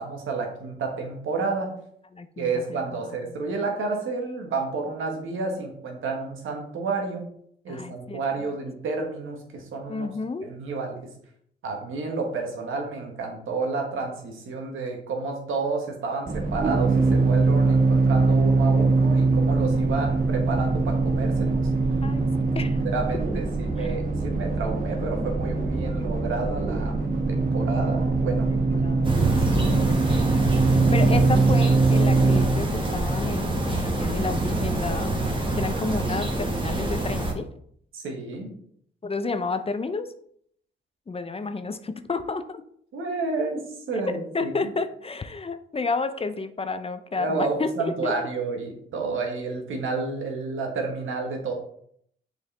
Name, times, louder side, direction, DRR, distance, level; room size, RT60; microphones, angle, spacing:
voice 1, 0.0-1.7 2.4-7.3 7.6-10.1 10.4-11.1 11.6-21.7 22.6-27.0 27.3-28.9 29.5-30.0 37.9-38.5 42.9-44.5 47.2-51.5, right 3 dB, 80° right, 2 dB, 1.6 m, -30 dB
voice 2, 2.1-3.1 7.7-8.5 9.9-10.5 19.8-20.4 22.0-22.8 23.8-23.9 28.2-37.5 39.0-40.1 41.1-42.6 44.3-48.1, left 3 dB, 30° left, 10 dB, 0.6 m, -31 dB
sound 1, 16.3-32.4, right 3 dB, 45° right, 1.4 m, -22 dB
sound 2, 29.0-37.3, right 2 dB, 25° right, 1.6 m, -26 dB
6.7 x 4.6 x 3.3 m, 0.66 s
cardioid pair, 70°, 20 cm